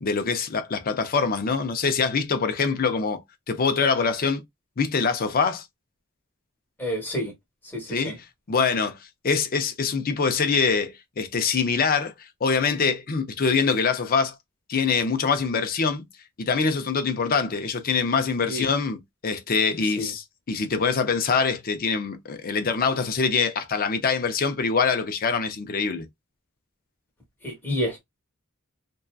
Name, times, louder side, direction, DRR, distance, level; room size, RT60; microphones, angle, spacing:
voice 1, 0.0-3.2 3.5-4.4 4.8-5.6 7.9-8.1 8.5-9.0 9.2-12.1 12.4-14.3 14.7-16.1 16.4-26.1, left 5 dB, 45° left, 0.5 m, -24 dB
voice 2, 6.8-7.3 7.7-8.1 18.4-18.7 20.0-20.1 27.4-28.0, equal, 10° left, 1.2 m, -29 dB
2.6 x 2.2 x 2.3 m
head